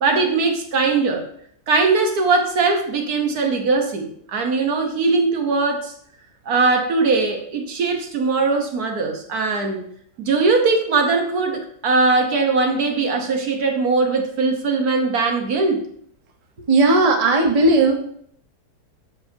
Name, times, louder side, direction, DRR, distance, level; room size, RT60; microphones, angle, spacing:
voice 1, 0.0-1.2 1.7-5.9 6.5-9.9 10.2-15.8, right 3 dB, 70° right, 3 dB, 1.5 m, -20 dB
voice 2, 16.7-18.0, right 2 dB, 25° right, 2 dB, 0.9 m, -16 dB
13.5 x 5.1 x 2.7 m, 0.66 s
omnidirectional pair, 1.7 m